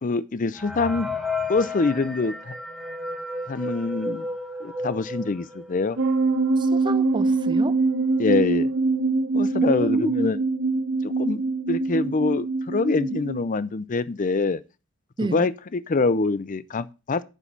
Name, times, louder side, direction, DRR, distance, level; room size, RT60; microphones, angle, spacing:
voice 1, 0.0-1.1 1.5-2.5 3.5-4.3 4.6-6.0 8.2-8.7 9.3-10.4 11.0-11.4 11.7-14.6 15.2-17.2, left 3 dB, 35° left, 0.5 m, -25 dB
sound 1, 0.5-6.0 6.4-6.5 6.7-6.9 7.6-7.7 8.1-8.4, left 2 dB, ahead, 1.6 m, -33 dB
sound 2, 6.0-13.4, right 3 dB, 65° right, 2.0 m, -23 dB
voice 2, 6.6-7.8 9.6-10.1 15.2-15.5, right 2 dB, 20° right, 0.4 m, -29 dB
8.1 x 6.4 x 5.5 m
head